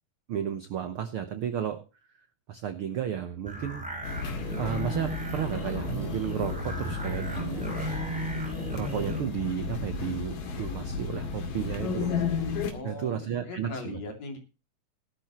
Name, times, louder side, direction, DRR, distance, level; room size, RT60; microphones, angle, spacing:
voice 1, 0.3-1.8 2.5-3.9 4.6-7.6 8.7-12.2 12.8-14.0, right 9 dB, 70° right, 9 dB, 1.3 m, -33 dB
sound 1, 3.5-9.2, right 1 dB, ahead, 7.1 m, -35 dB
sound 2, 4.0-12.7, left 5 dB, 90° left, 4.0 m, -33 dB
voice 2, 12.7-14.4, left 2 dB, 55° left, 4 dB, 3.9 m, -39 dB
17.0 x 12.0 x 3.1 m, 0.30 s
omnidirectional pair, 3.8 m